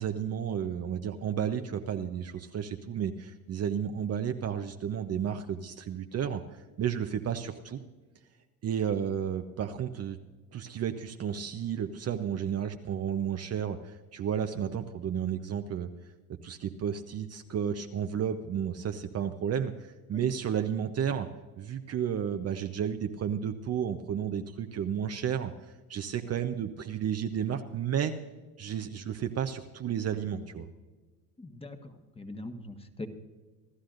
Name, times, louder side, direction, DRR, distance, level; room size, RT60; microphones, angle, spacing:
voice 1, 0.0-6.4 6.8-7.8 8.6-10.2 10.5-15.9 16.4-21.3 21.6-25.5 25.9-28.1 28.6-30.7, right 8 dB, 35° right, 6 dB, 0.9 m, -32 dB
voice 2, 31.4-31.8 32.2-33.1, left 2 dB, 10° left, 6 dB, 1.4 m, -41 dB
27.0 x 13.0 x 2.6 m, 1.3 s
hypercardioid pair, 95°, 46 cm